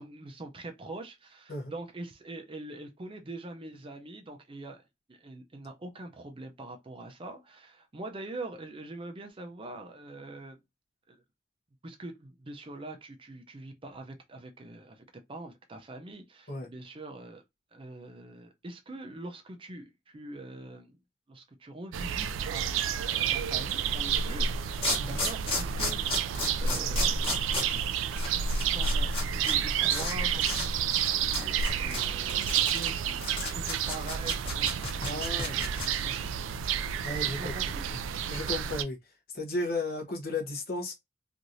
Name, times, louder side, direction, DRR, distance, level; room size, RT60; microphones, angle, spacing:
voice 1, 0.0-4.8 5.1-10.6 11.1-11.2 11.8-17.4 17.7-21.0 21.3-24.6 25.0-27.8 28.2-38.1, right 2 dB, 30° right, 0.5 m, -44 dB
sound 1, 21.9-38.8, right 7 dB, 80° right, 0.3 m, -30 dB
sound 2, 24.3-24.4 24.8-29.6 29.8-30.1 30.4-30.7 30.9-35.9, left 2 dB, 30° left, 1.3 m, -33 dB
voice 2, 35.0-35.6 37.0-37.5 38.3-39.0 39.3-40.9, left 2 dB, 50° left, 0.9 m, -34 dB
3.0 x 2.6 x 2.6 m
head